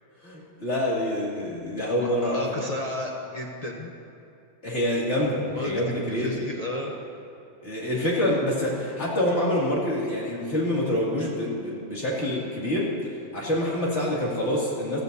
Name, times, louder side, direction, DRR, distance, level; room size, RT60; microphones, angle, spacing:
voice 1, 0.2-2.7 4.6-6.4 7.6-12.9 13.3-15.0, left 1 dB, 60° left, -6 dB, 2.9 m, -26 dB
voice 2, 2.0-3.9 5.5-7.0, left 1 dB, 35° left, -1 dB, 0.9 m, -33 dB
15.0 x 14.5 x 2.7 m, 2.6 s
omnidirectional pair, 1.3 m